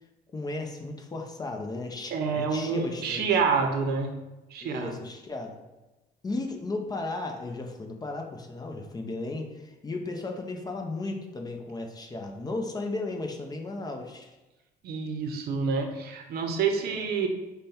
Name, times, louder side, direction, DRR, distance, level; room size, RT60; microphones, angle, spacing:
voice 1, 0.3-3.3 4.6-5.5 6.2-14.3 16.9-17.1, left 2 dB, 25° left, 3 dB, 0.6 m, -35 dB
voice 2, 2.1-4.1 4.5-4.9 14.8-17.3, right 5 dB, 70° right, 5 dB, 0.7 m, -27 dB
5.1 x 2.2 x 4.2 m, 1.1 s
cardioid pair, 110°, 17 cm